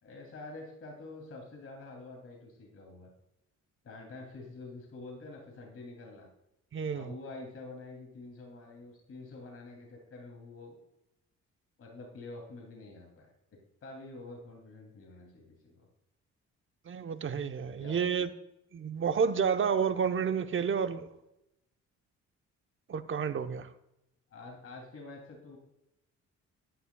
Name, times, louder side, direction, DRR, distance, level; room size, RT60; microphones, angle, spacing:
voice 1, 0.0-3.1 3.8-6.3 6.9-10.8 11.8-13.3 13.8-15.9 17.8-18.1 24.3-25.6, left 2 dB, 50° left, 2.9 m, -47 dB
voice 2, 6.7-7.1 16.9-18.3 18.7-21.1 22.9-23.7, right 6 dB, 40° right, 0.9 m, -30 dB
11.5 x 11.0 x 2.3 m
cardioid pair, 90°, 30 cm